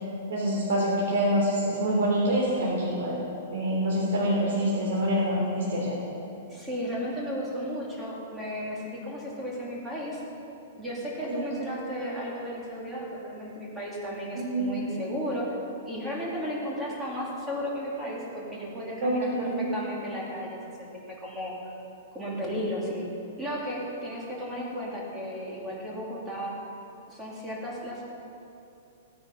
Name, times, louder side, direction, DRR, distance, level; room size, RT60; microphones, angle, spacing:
voice 1, 0.3-3.2 3.5-6.0 11.3-11.7 14.3-14.7 19.0-19.6, equal, 70° right, -5 dB, 3.7 m, -26 dB
voice 2, 6.5-10.2 10.8-15.5 15.9-21.5 22.1-23.1 23.4-26.6 27.1-28.0, equal, 10° right, -5 dB, 2.6 m, -34 dB
17.5 x 9.8 x 5.7 m, 2.8 s
hypercardioid pair, 165°, 0 cm